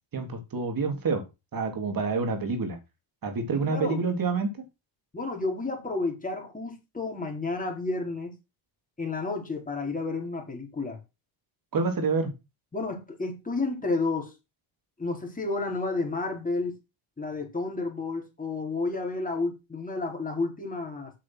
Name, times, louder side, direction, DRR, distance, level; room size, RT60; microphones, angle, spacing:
voice 1, 0.1-1.2 1.5-2.8 3.2-4.5 11.7-12.3, right 4 dB, 40° right, 3.5 m, -27 dB
voice 2, 3.5-4.0 5.1-8.3 9.0-11.0 12.7-14.3 15.0-16.7 17.2-21.1, left 3 dB, 15° left, 4.5 m, -31 dB
8.9 x 6.3 x 6.3 m
cardioid pair, 110°, 50 cm